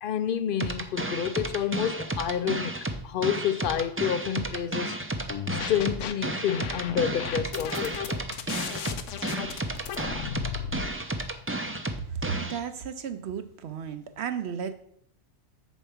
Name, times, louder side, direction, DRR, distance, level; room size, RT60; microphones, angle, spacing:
voice 1, 0.0-2.7 3.0-5.0 5.5-8.2, left 9 dB, 60° left, 0.6 m, -29 dB
sound 1, 0.6-12.6, right 1 dB, 15° right, 0.4 m, -32 dB
sound 2, 5.3-6.1 6.5-10.9, left 8 dB, 90° left, 1.0 m, -35 dB
voice 2, 12.1-14.8, right 7 dB, 65° right, 0.9 m, -34 dB
7.2 x 4.6 x 6.9 m
omnidirectional pair, 1.2 m